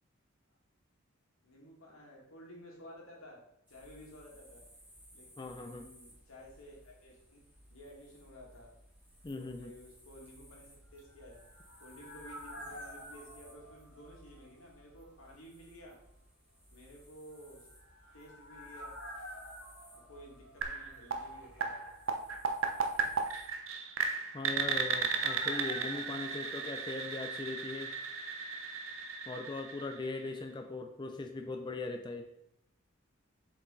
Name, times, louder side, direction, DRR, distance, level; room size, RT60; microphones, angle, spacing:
voice 1, 1.4-3.4 3.7-4.6 5.1-7.4 7.7-8.7 9.3-11.4 11.8-15.9 16.7-17.7 18.1-18.9 19.9-21.8, equal, 90° left, -2 dB, 2.2 m, -53 dB
sound 1, 3.7-23.5, equal, 10° right, 2.2 m, -59 dB
voice 2, 5.4-5.9 9.2-9.7 24.3-27.9 29.3-32.3, left 3 dB, 20° left, 5 dB, 0.4 m, -40 dB
sound 2, 11.0-14.8 15.1-15.2 17.6-21.3 21.5-21.6 23.9-27.8 28.0-28.1, equal, 55° left, 2.0 m, -50 dB
sound 3, 20.6-30.4, right 5 dB, 75° right, 0.7 m, -36 dB
6.9 x 4.8 x 3.9 m, 0.78 s
head